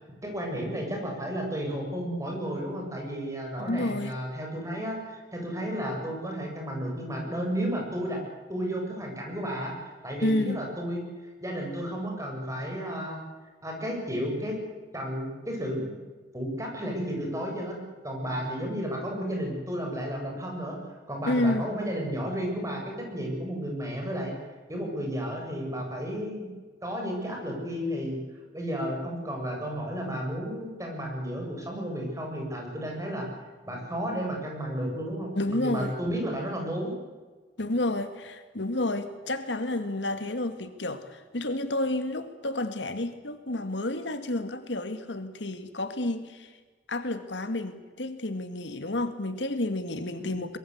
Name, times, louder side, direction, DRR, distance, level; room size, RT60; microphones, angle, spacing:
voice 1, 0.2-8.2 8.5-9.7 10.0-13.2 13.6-14.6 14.9-15.9 16.3-17.8 18.0-20.8 21.1-24.3 24.7-26.5 26.8-28.2 28.5-33.2 33.6-36.9 50.2-50.3, equal, 15° right, 1 dB, 7.7 m, -32 dB
voice 2, 3.6-4.2 10.2-10.6 21.3-21.7 35.3-35.9 37.6-46.5 46.9-50.6, left 1 dB, 75° left, 9 dB, 2.1 m, -30 dB
24.5 x 22.0 x 8.2 m, 1.4 s
head